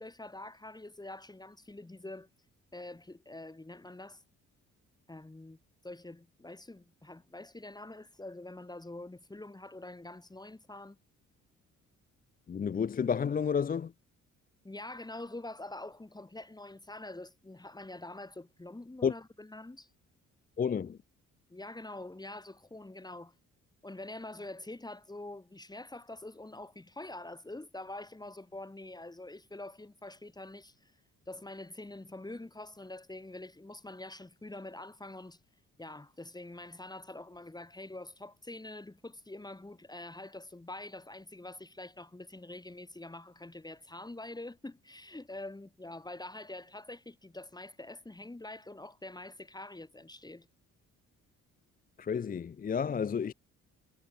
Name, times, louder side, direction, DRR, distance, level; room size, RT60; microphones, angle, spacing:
voice 1, 0.0-2.3 2.7-4.2 5.1-5.6 5.8-11.0 14.6-19.9 21.5-23.4 23.8-30.9 31.3-35.4 35.8-50.5, left 2 dB, 15° left, 3.7 m, -45 dB
voice 2, 12.5-13.9 19.0-19.1 20.6-21.0 52.0-53.3, left 7 dB, 30° left, 0.5 m, -31 dB
cardioid pair, 90°, 30 cm